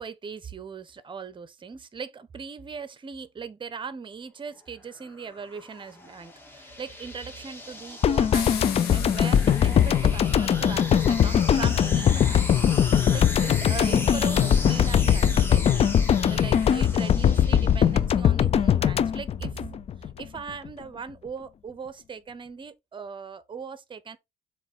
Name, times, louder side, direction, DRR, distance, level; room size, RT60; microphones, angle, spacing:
voice 1, 0.0-12.6 13.1-15.9 16.3-24.2, right 5 dB, 30° right, 0.9 m, -39 dB
sound 1, 4.7-18.2, left 1 dB, 10° left, 1.9 m, -38 dB
sound 2, 8.0-20.2 20.5-20.7, left 9 dB, 35° left, 0.4 m, -21 dB
sound 3, 8.3-10.7, left 9 dB, 70° left, 1.5 m, -38 dB
7.2 x 3.2 x 4.1 m
cardioid pair, 110°, 17 cm